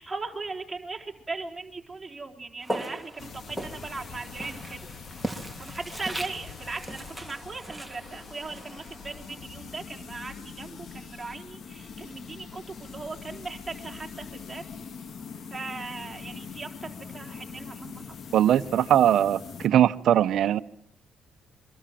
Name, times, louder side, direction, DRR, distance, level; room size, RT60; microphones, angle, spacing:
voice 1, 0.0-4.9 5.6-14.6 15.5-18.1, right 3 dB, 15° right, 0 dB, 4.1 m, -38 dB
Walk footsteps, 2.6-9.7, right 1 dB, 5° left, 3.7 m, -39 dB
sound 1, 3.2-19.7, left 6 dB, 55° left, 2.1 m, -43 dB
voice 2, 18.3-20.6, right 11 dB, 70° right, 12 dB, 1.0 m, -21 dB
27.0 x 24.0 x 7.7 m, 0.68 s
cardioid pair, 90°, 0 cm